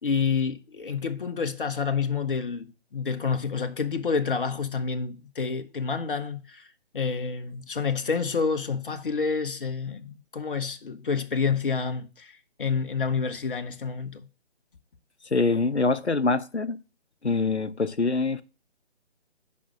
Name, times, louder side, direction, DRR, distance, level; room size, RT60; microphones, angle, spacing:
voice 1, 0.0-6.7 6.9-14.3, left 5 dB, 55° left, 1.1 m, -28 dB
voice 2, 15.3-16.8 17.2-18.4, left 3 dB, 90° left, 0.8 m, -24 dB
8.7 x 5.4 x 5.0 m
figure-of-eight pair, 145°, 33 cm